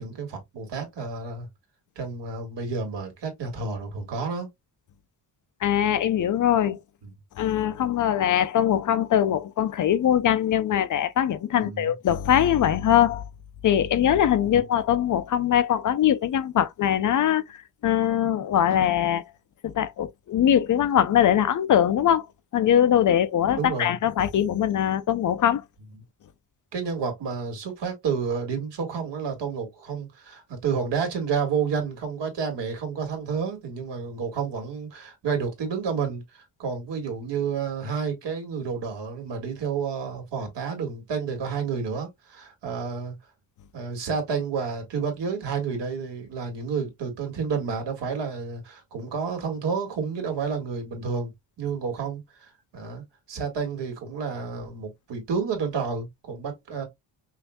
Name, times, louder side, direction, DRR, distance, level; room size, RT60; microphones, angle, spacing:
voice 1, 0.0-1.5 2.0-4.5 11.6-11.9 14.4-14.6 23.6-23.9 26.7-43.1 43.7-51.3 51.6-56.8, right 5 dB, 80° right, 2.0 m, -30 dB
voice 2, 5.6-6.8 7.4-13.3 13.6-19.2 19.6-22.2 22.5-25.6, left 10 dB, 50° left, 0.5 m, -22 dB
5.7 x 2.6 x 2.3 m
wide cardioid pair, 155°, 41 cm